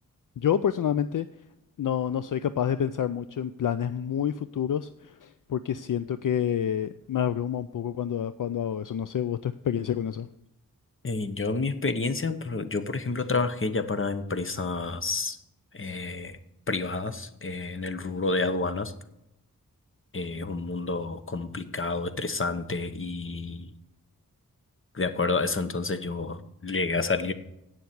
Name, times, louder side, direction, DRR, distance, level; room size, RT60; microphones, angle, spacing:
voice 1, 0.4-1.3 1.8-10.3, left 9 dB, 65° left, 13 dB, 0.5 m, -28 dB
voice 2, 11.0-15.4 15.7-16.4 16.7-18.9 20.1-23.7 24.9-27.3, left 3 dB, 35° left, 10 dB, 1.0 m, -29 dB
8.9 x 7.1 x 7.9 m, 0.82 s
wide cardioid pair, 85°, 34 cm